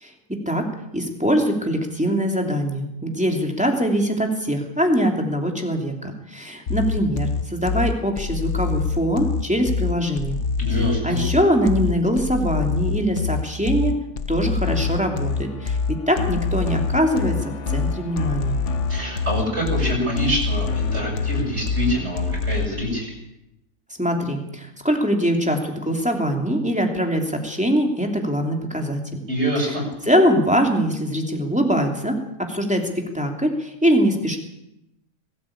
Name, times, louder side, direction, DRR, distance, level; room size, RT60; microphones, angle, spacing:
voice 1, 0.0-10.4 11.0-14.0 14.3-18.6 24.0-29.2 30.1-34.4, equal, 5° right, 2 dB, 2.9 m, -22 dB
sound 1, 6.7-22.7, left 4 dB, 50° left, 1.4 m, -25 dB
voice 2, 10.6-11.2 18.9-23.1 29.3-29.8, equal, 40° right, -1 dB, 7.0 m, -25 dB
21.5 x 13.5 x 8.7 m, 0.86 s
omnidirectional pair, 1.7 m